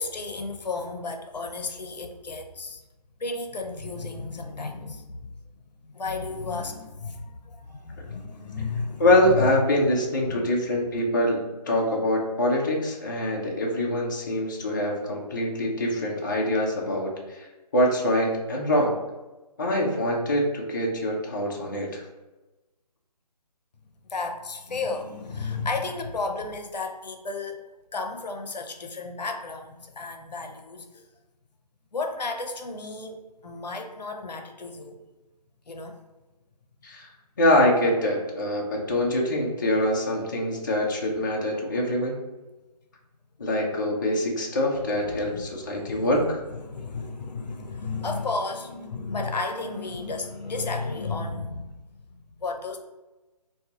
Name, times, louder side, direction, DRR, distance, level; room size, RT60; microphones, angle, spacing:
voice 1, 0.0-2.8 3.2-5.3 5.8-9.0 9.3-9.5 10.2-10.5 24.1-27.6 27.9-31.0 31.9-35.0 35.7-36.0 45.1-51.8 52.1-52.8, left 3 dB, 85° left, 4 dB, 0.6 m, -33 dB
voice 2, 9.0-17.5 17.7-18.9 19.6-22.0 36.8-37.1 37.4-42.1 43.4-46.4, left 1 dB, 30° left, -1 dB, 0.4 m, -24 dB
3.8 x 2.2 x 2.8 m, 1.1 s
figure-of-eight pair, 160°, 21 cm